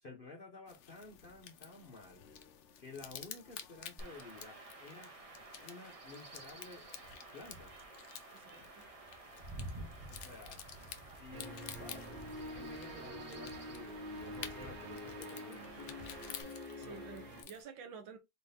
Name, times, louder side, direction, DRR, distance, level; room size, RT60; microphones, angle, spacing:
voice 1, 0.0-2.3 2.8-5.1 5.6-6.9 7.3-7.7 10.1-10.6 11.2-12.2 12.5-16.0 16.8-17.1, left 3 dB, 45° left, 0.8 m, -52 dB
sound 1, 0.7-17.6, left 8 dB, 80° left, 0.6 m, -52 dB
Chirp tweet / Wind / Stream, 4.0-16.4, right 2 dB, 40° right, 0.5 m, -51 dB
voice 2, 8.3-8.8 16.8-18.2, right 6 dB, 85° right, 1.7 m, -51 dB
sound 2, 11.3-17.4, left 1 dB, 70° right, 1.8 m, -46 dB
4.3 x 3.7 x 2.7 m
omnidirectional pair, 2.0 m